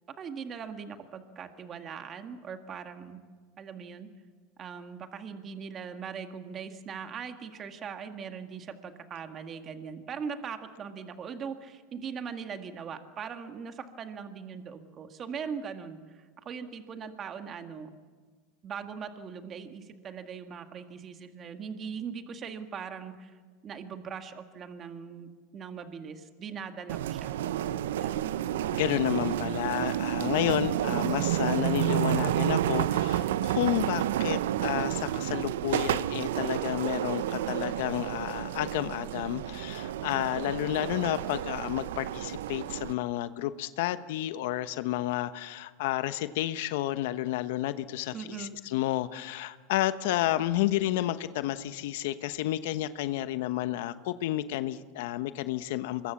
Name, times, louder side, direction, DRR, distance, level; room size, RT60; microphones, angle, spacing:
voice 1, 0.2-3.2 3.6-4.1 4.6-18.0 18.6-27.3 28.0-28.4 48.1-48.5, right 6 dB, 35° right, 6 dB, 1.9 m, -40 dB
sound 1, 26.9-42.9, right 12 dB, 85° right, 0.7 m, -30 dB
voice 2, 28.7-56.1, left 14 dB, 75° left, 12 dB, 1.0 m, -31 dB
25.5 x 22.0 x 7.3 m, 1.5 s
supercardioid pair, 110°, 0 cm